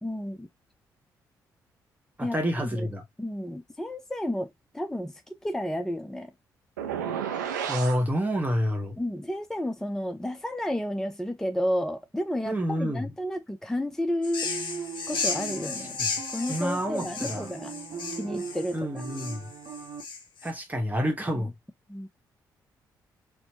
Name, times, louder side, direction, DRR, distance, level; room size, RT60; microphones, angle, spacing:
voice 1, 0.0-0.5 2.2-2.9 3.2-6.3 9.0-14.5 15.1-16.0 16.3-17.7 18.2-19.0 21.3-21.5 21.9-22.1, left 1 dB, 5° left, 0.5 m, -31 dB
voice 2, 2.2-3.0 7.7-8.9 12.5-13.1 15.8-16.1 16.5-17.5 18.7-19.5 20.4-21.5, equal, 15° right, 1.0 m, -28 dB
sound 1, 6.8-8.0, right 8 dB, 90° right, 0.4 m, -31 dB
sound 2, 14.2-20.5, left 5 dB, 55° left, 0.7 m, -34 dB
sound 3, 14.4-20.0, right 6 dB, 45° right, 0.8 m, -40 dB
4.3 x 2.0 x 2.7 m
hypercardioid pair, 40°, 9 cm